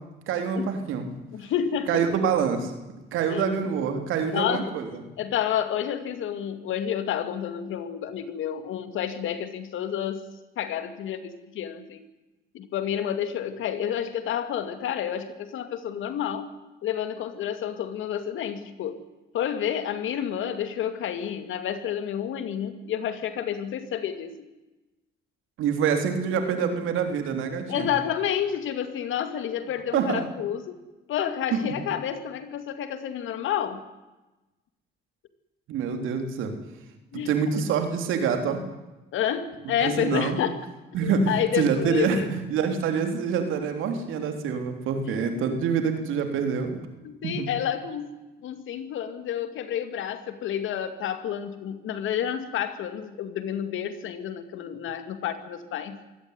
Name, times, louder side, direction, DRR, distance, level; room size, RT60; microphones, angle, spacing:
voice 1, 0.3-1.1 1.9-4.9 25.6-27.9 29.9-30.2 31.5-31.6 35.7-36.5 37.1-38.6 39.8-40.4 40.9-46.8 47.2-47.5, right 6 dB, 90° right, 6 dB, 3.5 m, -26 dB
voice 2, 1.3-2.0 3.3-3.6 4.3-4.7 5.2-10.2 10.6-12.0 12.5-16.5 16.8-19.0 19.3-24.5 27.7-30.7 31.1-33.8 37.1-37.3 39.1-40.6 41.0-42.3 45.0-45.4 47.0-48.2 48.4-56.0, left 9 dB, 80° left, 10 dB, 2.4 m, -30 dB
23.5 x 17.5 x 9.8 m, 1.1 s
cardioid pair, 90°, 20 cm